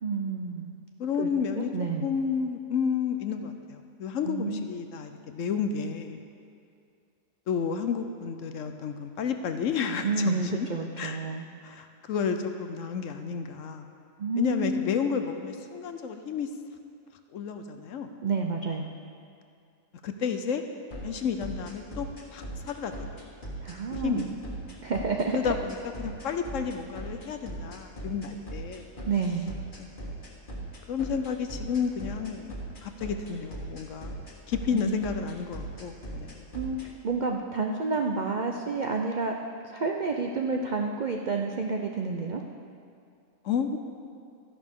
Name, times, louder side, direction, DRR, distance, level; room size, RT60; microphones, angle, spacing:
voice 1, 0.0-0.7 1.2-1.3 1.6-2.1 4.2-4.7 10.0-11.4 14.2-14.9 18.2-18.9 23.6-24.3 24.8-25.4 29.0-29.5 34.7-35.0 36.5-39.3 39.6-42.4, right 4 dB, 80° right, 2 dB, 0.4 m, -29 dB
voice 2, 1.0-1.7 2.0-6.2 7.5-10.7 11.0-11.2 11.6-13.9 14.4-16.5 17.3-18.1 20.0-20.6 21.0-23.3 23.9-24.3 25.3-28.9 29.8-29.9 30.6-34.1 34.5-36.5 43.4-43.8, left 6 dB, 65° left, 7 dB, 0.9 m, -31 dB
sound 1, 20.9-36.9, right 1 dB, 35° left, 1.6 m, -38 dB
13.0 x 11.0 x 3.7 m, 2.4 s
omnidirectional pair, 1.6 m